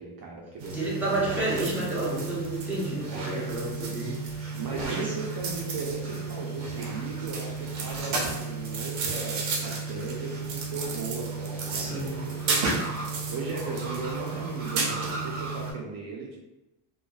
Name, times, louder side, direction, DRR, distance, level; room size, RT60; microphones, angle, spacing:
voice 1, 0.0-1.4 3.1-3.5 4.5-12.9 13.3-16.4, right 4 dB, 50° right, -3 dB, 0.6 m, -37 dB
sound 1, 0.6-15.7, right 4 dB, 85° right, 0.7 m, -32 dB
voice 2, 0.7-4.2 4.7-5.1 11.7-12.2, right 2 dB, 5° right, -8 dB, 0.7 m, -30 dB
2.5 x 2.3 x 2.2 m, 0.95 s
cardioid pair, 120°, 45 cm